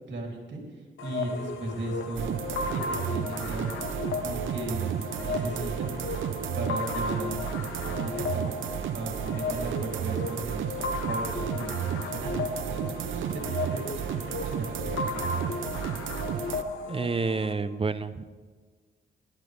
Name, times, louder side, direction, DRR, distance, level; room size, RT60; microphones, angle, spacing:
voice 1, 0.1-2.4 2.7-3.7 4.2-6.0 6.5-7.5 7.8-8.5 8.9-15.3, right 2 dB, 65° right, 1 dB, 3.1 m, -37 dB
sound 1, 1.0-17.5, left 4 dB, 85° left, 1.6 m, -35 dB
sound 2, 2.1-16.6, right 9 dB, 80° right, 0.7 m, -33 dB
voice 2, 16.9-18.2, right 4 dB, 30° right, 12 dB, 0.8 m, -29 dB
17.5 x 12.5 x 3.5 m, 1.5 s
cardioid pair, 70°, 20 cm